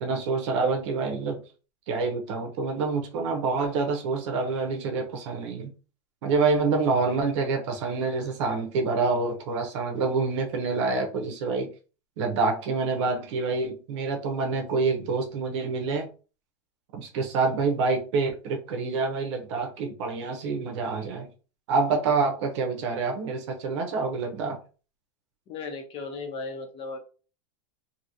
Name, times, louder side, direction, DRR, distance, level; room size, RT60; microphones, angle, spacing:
voice 1, 0.0-1.4 1.9-5.7 6.2-11.7 12.2-16.1 16.9-21.3 21.7-24.6, right 4 dB, 65° right, 0.8 m, -27 dB
voice 2, 25.5-27.0, left 3 dB, 35° left, 0.9 m, -36 dB
2.9 x 2.8 x 2.6 m
supercardioid pair, 140°, 16 cm